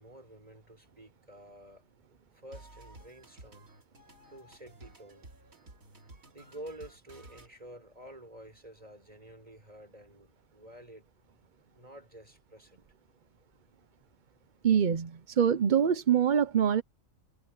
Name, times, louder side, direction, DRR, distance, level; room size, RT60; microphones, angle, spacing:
voice 1, 0.0-1.9 2.3-3.7 4.3-5.3 6.3-11.1 11.7-12.9, right 1 dB, 25° right, 6.2 m, -50 dB
sound 1, 2.5-7.5, right 2 dB, 65° right, 3.5 m, -53 dB
voice 2, 14.6-16.8, right 8 dB, 45° right, 0.6 m, -25 dB
omnidirectional pair, 1.5 m